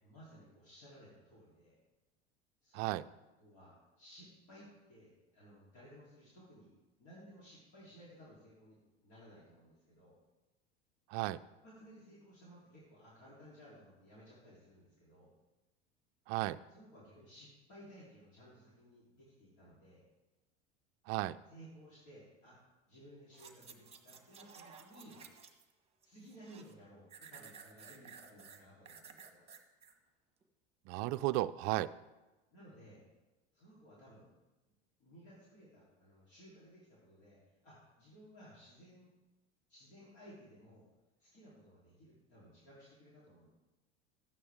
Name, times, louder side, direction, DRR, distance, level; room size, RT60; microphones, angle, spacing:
voice 1, 0.0-1.8 2.6-2.8 3.4-6.7 7.0-10.2 11.4-15.3 16.7-20.1 21.5-22.6 22.9-25.2 26.0-29.4 32.5-33.0 33.5-34.3 35.0-39.2 39.7-40.9 41.2-43.5, equal, 55° left, -7 dB, 3.7 m, -58 dB
voice 2, 16.3-16.6 21.1-21.4 30.9-31.9, right 17 dB, 50° right, 13 dB, 0.5 m, -34 dB
sound 1, 23.3-25.7 26.0-26.7 27.1-29.9 30.4-30.5, right 6 dB, 20° right, 1.3 m, -55 dB
13.0 x 9.3 x 3.7 m, 1.1 s
hypercardioid pair, 85°, 34 cm